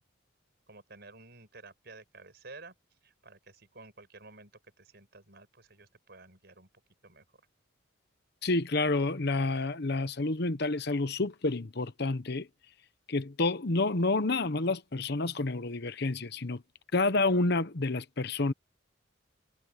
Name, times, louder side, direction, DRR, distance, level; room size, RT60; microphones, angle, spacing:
voice 1, 0.7-2.7 3.0-4.5 4.8-6.7 7.0-7.3, right 3 dB, 55° right, 5.9 m, -52 dB
voice 2, 8.4-12.5 13.1-16.6 16.9-18.5, left 2 dB, 55° left, 1.0 m, -29 dB
head